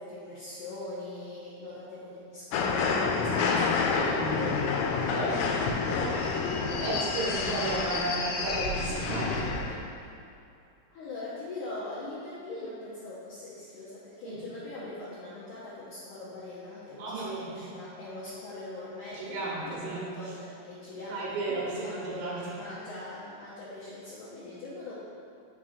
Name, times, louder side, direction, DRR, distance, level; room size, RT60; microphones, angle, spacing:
voice 1, 0.0-5.0 10.9-25.0, left 2 dB, 70° left, -9 dB, 1.9 m, -42 dB
sound 1, 2.5-9.8, left 4 dB, 90° left, 2.8 m, -28 dB
voice 2, 3.3-4.4 5.1-6.3 6.7-9.7 14.3-14.4 17.0-17.5 19.1-20.1 21.1-22.4, right 2 dB, 75° right, -6 dB, 1.9 m, -34 dB
6.0 x 4.3 x 5.0 m, 2.5 s
omnidirectional pair, 4.8 m